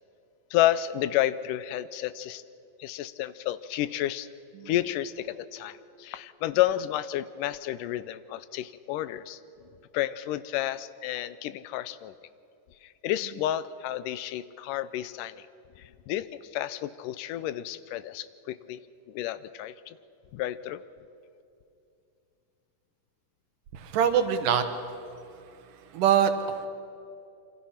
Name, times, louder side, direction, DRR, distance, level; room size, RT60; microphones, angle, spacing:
voice 1, 0.5-2.4 2.8-4.3 4.7-9.4 9.9-12.1 12.8-15.5 15.8-18.8 19.1-20.0 20.3-20.8, left 13 dB, 85° left, 15 dB, 2.2 m, -31 dB
voice 2, 23.7-24.7 25.7-26.7, right 8 dB, 80° right, 8 dB, 2.9 m, -24 dB
27.5 x 25.0 x 5.8 m, 2.6 s
omnidirectional pair, 3.7 m